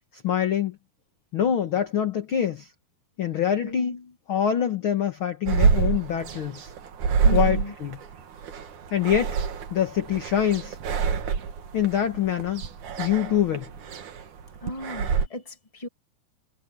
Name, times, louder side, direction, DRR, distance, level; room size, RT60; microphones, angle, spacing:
voice 1, 0.1-0.8 1.3-2.7 3.2-6.7 7.3-8.0 8.9-9.4 9.7-10.8 11.7-12.6 13.0-13.7, left 9 dB, 55° left, 1.6 m, -25 dB
voice 2, 3.6-4.0 7.2-7.7 14.6-15.9, left 2 dB, 10° left, 2.2 m, -36 dB
sound 1, 5.5-15.3, right 6 dB, 60° right, 3.2 m, -26 dB
omnidirectional pair, 4.1 m